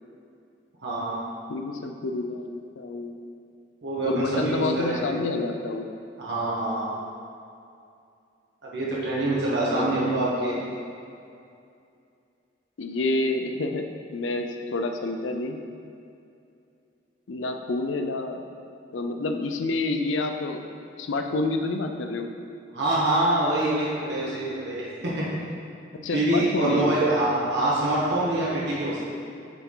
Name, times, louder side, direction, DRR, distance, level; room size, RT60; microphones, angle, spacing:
voice 1, 0.8-1.2 3.8-5.0 6.2-6.9 8.7-10.5 22.7-25.3 26.1-29.0, right 1 dB, 65° right, -7 dB, 1.4 m, -25 dB
voice 2, 1.5-3.2 4.0-5.9 9.6-10.6 12.8-15.6 17.3-18.4 18.9-20.6 21.0-22.3 26.0-26.9, left 2 dB, 85° left, 5 dB, 0.5 m, -28 dB
6.9 x 4.6 x 3.8 m, 2.5 s
head